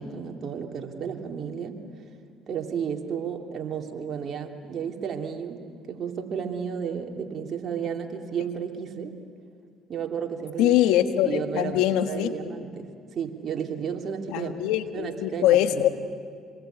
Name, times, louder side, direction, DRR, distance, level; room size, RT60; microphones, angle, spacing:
voice 1, 0.0-1.8 2.5-9.1 9.9-10.8 11.2-14.6 14.9-15.9, right 7 dB, 50° right, 3 dB, 2.9 m, -33 dB
voice 2, 10.6-12.3 14.3-15.9, left 12 dB, 75° left, 8 dB, 1.5 m, -22 dB
27.0 x 21.0 x 9.3 m, 2.2 s
supercardioid pair, 65°, 0 cm